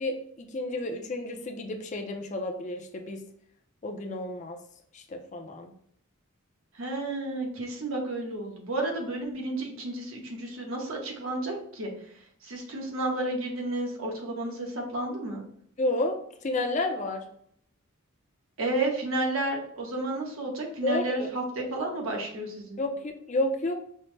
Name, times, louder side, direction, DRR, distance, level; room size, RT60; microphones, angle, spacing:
voice 1, 0.0-3.2 3.8-4.6 4.9-5.7 15.8-16.2 16.4-17.2 20.8-21.3 22.8-23.7, left 2 dB, 35° left, 4 dB, 0.5 m, -31 dB
voice 2, 6.7-15.4 18.6-22.8, right 2 dB, 75° right, 0 dB, 1.0 m, -32 dB
5.4 x 2.1 x 3.2 m, 0.65 s
head